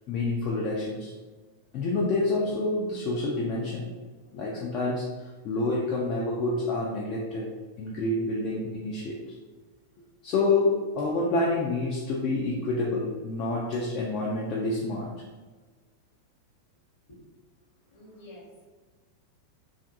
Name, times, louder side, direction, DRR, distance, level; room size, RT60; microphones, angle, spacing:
voice 1, 0.1-1.1 1.7-3.9 4.3-7.5 7.8-9.2 10.2-15.1, left 2 dB, 40° left, -3 dB, 0.4 m, -28 dB
voice 2, 17.9-18.6, left 1 dB, 55° left, -4 dB, 0.9 m, -49 dB
2.5 x 2.4 x 2.4 m, 1.4 s
figure-of-eight pair, 90°, 0 cm